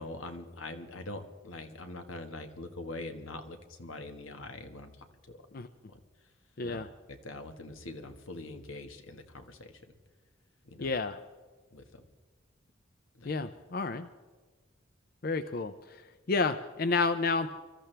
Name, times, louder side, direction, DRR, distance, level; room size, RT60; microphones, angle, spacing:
voice 1, 0.0-4.9 5.9-6.0 6.6-6.8 7.1-9.9 10.6-10.9 11.7-12.0 13.2-13.3, left 2 dB, 85° left, 7 dB, 1.5 m, -43 dB
voice 2, 6.6-6.9 10.8-11.2 13.3-14.1 15.2-16.0 16.3-17.5, left 3 dB, 50° left, 11 dB, 0.5 m, -30 dB
25.0 x 14.0 x 3.4 m, 1.4 s
head